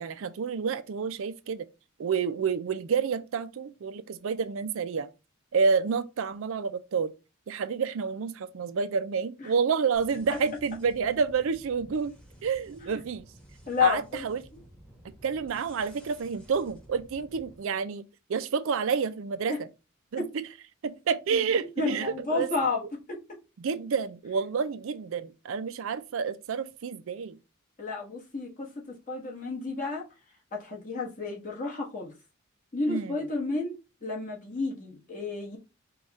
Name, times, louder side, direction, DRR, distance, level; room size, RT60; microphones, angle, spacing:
voice 1, 0.0-1.7 2.0-5.1 5.5-7.1 7.5-12.1 12.4-13.3 13.8-14.4 15.2-18.0 18.3-19.7 20.1-20.4 20.8-22.5 23.6-27.4 32.9-33.2, right 5 dB, 65° right, 0.4 m, -29 dB
sound 1, 9.9-17.6, right 1 dB, 5° left, 1.1 m, -53 dB
voice 2, 13.7-14.3 19.5-19.6 20.2-20.3 21.8-22.8 23.1-23.2 27.8-30.0 30.5-32.1 32.7-35.6, left 4 dB, 40° left, 1.3 m, -31 dB
4.8 x 2.3 x 4.0 m
head